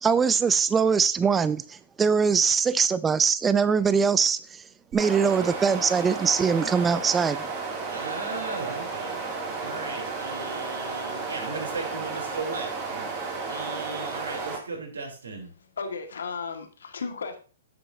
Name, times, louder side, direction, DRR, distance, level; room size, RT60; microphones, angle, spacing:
voice 1, 0.0-4.6 4.9-7.4, right 6 dB, 15° right, 0.3 m, -22 dB
sound 1, 4.9-14.6, right 4 dB, 30° right, 2.6 m, -33 dB
voice 2, 7.9-15.5, right 3 dB, 90° right, 3.4 m, -37 dB
voice 3, 15.6-17.4, left 5 dB, 80° left, 1.8 m, -35 dB
10.0 x 7.8 x 2.7 m
hypercardioid pair, 140°, 0 cm